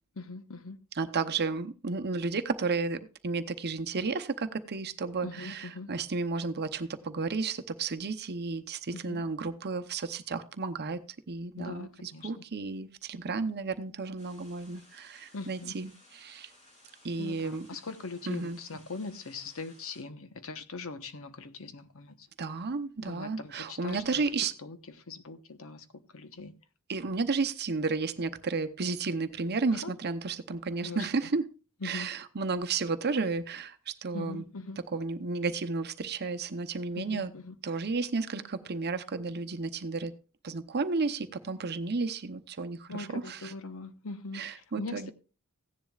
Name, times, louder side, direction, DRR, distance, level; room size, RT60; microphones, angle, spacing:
voice 1, 0.2-0.8 5.2-5.9 8.9-9.2 11.6-12.4 15.3-15.7 17.2-22.3 23.0-24.2 24.6-26.5 29.7-29.9 30.8-31.1 31.8-32.1 34.1-34.8 36.9-37.6 42.9-45.1, left 3 dB, 70° left, 1.1 m, -41 dB
voice 2, 1.0-11.0 11.3-16.5 17.0-17.7 18.3-18.6 22.4-24.5 26.9-31.4 31.8-34.4 34.9-37.3 37.6-40.1 40.4-43.5 44.3-45.1, right 4 dB, 50° right, 0.8 m, -32 dB
sound 1, 14.2-20.0, left 1 dB, 35° left, 6.6 m, -59 dB
16.0 x 10.5 x 2.4 m
head